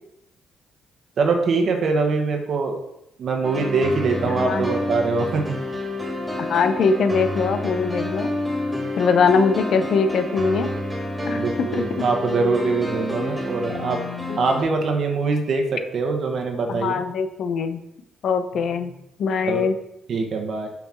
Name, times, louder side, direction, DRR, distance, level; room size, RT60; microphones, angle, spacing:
voice 1, 1.2-2.8 3.2-5.6 11.3-14.0 14.4-17.0 19.4-19.6 20.1-20.7, right 4 dB, 60° right, 3 dB, 1.2 m, -23 dB
sound 1, 3.4-14.6, left 1 dB, 5° right, 2.4 m, -29 dB
voice 2, 4.2-4.7 6.5-8.3 9.0-10.7 11.3-12.1 14.3-14.4 16.7-17.8 18.2-18.9 19.2-19.7, left 5 dB, 65° left, 9 dB, 0.7 m, -22 dB
6.1 x 5.7 x 4.4 m, 0.83 s
cardioid pair, 90°, 0 cm